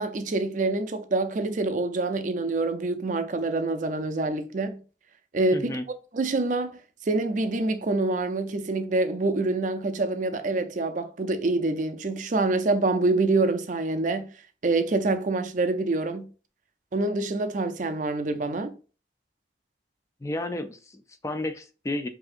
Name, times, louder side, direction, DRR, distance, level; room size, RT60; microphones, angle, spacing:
voice 1, 0.0-4.8 5.3-5.8 6.1-6.8 7.0-14.3 14.6-16.3 16.9-18.7, right 2 dB, 45° right, 0.5 m, -26 dB
voice 2, 5.5-5.8 20.2-22.1, left 1 dB, 15° left, 0.4 m, -32 dB
4.9 x 2.7 x 2.5 m
head